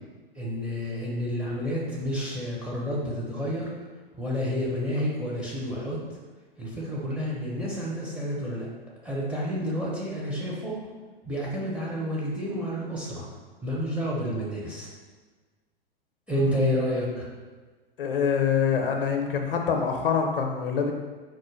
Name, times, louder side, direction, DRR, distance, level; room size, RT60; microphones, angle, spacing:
voice 1, 0.4-3.7 4.2-6.0 6.6-8.7 9.0-10.8 11.2-13.3 13.6-14.9 16.3-17.3, equal, 5° right, -5 dB, 0.5 m, -29 dB
voice 2, 18.0-20.9, left 6 dB, 65° left, 3 dB, 0.6 m, -25 dB
4.4 x 2.1 x 3.1 m, 1.3 s
figure-of-eight pair, 100°, 29 cm